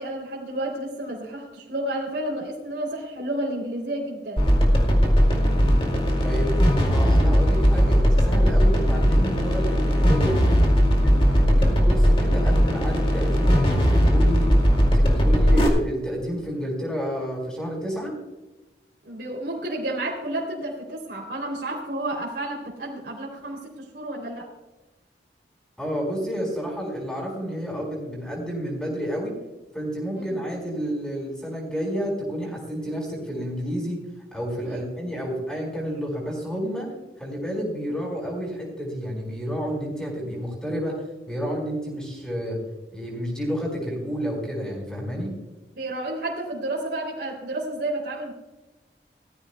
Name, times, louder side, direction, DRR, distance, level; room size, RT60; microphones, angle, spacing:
voice 1, 0.0-4.5 11.4-11.7 19.0-24.5 30.1-30.4 34.6-34.9 37.8-37.9 45.7-48.3, right 1 dB, 65° right, -4 dB, 3.1 m, -31 dB
sound 1, 4.4-15.7, equal, 30° left, 2.3 m, -19 dB
voice 2, 6.8-10.5 11.0-14.5 14.8-18.1 25.8-29.3 29.7-34.0 34.3-36.9 37.2-42.6 42.9-45.3, equal, 5° left, -1 dB, 4.7 m, -30 dB
18.5 x 14.0 x 2.3 m, 1.1 s
head